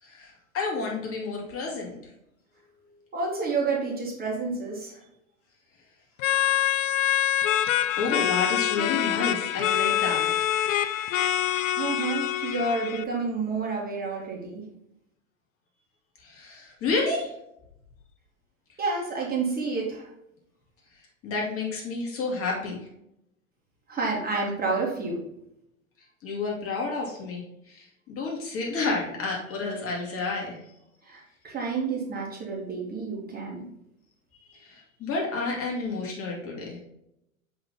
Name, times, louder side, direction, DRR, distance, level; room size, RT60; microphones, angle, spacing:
voice 1, 0.0-2.0 8.0-10.5 16.2-17.3 20.9-22.8 26.2-30.6 34.5-36.8, left 3 dB, 35° left, -2 dB, 2.4 m, -30 dB
voice 2, 3.1-5.0 11.7-14.6 18.8-20.1 23.9-25.2 31.0-33.7, right 4 dB, 20° right, -2 dB, 2.1 m, -29 dB
sound 1, 6.2-13.0, left 11 dB, 65° left, 0.6 m, -25 dB
7.5 x 4.1 x 3.9 m, 0.81 s
figure-of-eight pair, 90°, 41 cm